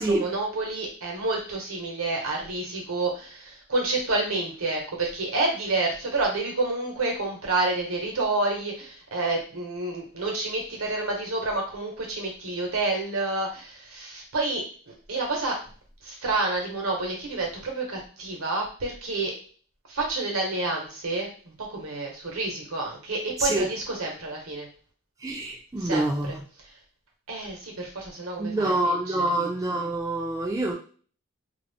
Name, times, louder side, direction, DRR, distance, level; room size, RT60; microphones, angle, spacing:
voice 1, 0.0-15.6 16.0-19.3 19.9-24.7 25.8-26.4 27.3-29.3, right 2 dB, 85° right, 0 dB, 0.9 m, -29 dB
voice 2, 25.2-26.4 28.4-30.7, right 2 dB, 15° right, -1 dB, 0.3 m, -26 dB
2.4 x 2.0 x 3.3 m, 0.41 s
head